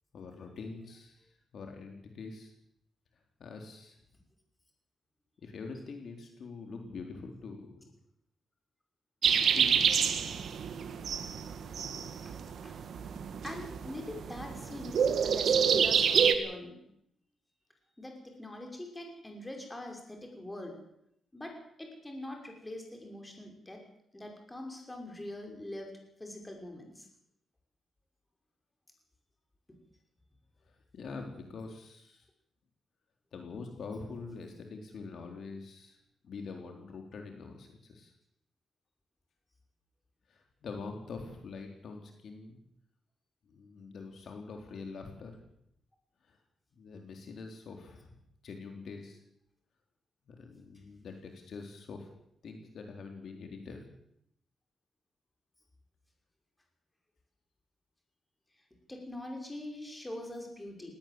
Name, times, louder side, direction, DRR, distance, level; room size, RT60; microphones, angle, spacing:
voice 1, 0.1-1.3 1.5-2.5 3.4-4.0 5.4-7.9 9.5-10.1 30.6-32.3 33.3-36.0 36.2-38.1 40.3-42.6 43.5-45.4 46.3-46.4 46.8-48.2 48.4-49.2 50.3-52.1 52.4-53.8, left 4 dB, 60° left, 3 dB, 3.7 m, -44 dB
sound 1, 9.2-16.4, right 7 dB, 65° right, 2.0 m, -28 dB
voice 2, 13.4-16.8 18.0-20.8 21.3-23.8 24.1-25.9 26.2-27.1 58.9-60.9, left 1 dB, 10° left, 2 dB, 5.8 m, -43 dB
19.5 x 17.5 x 7.8 m, 0.75 s
cardioid pair, 120°, 0 cm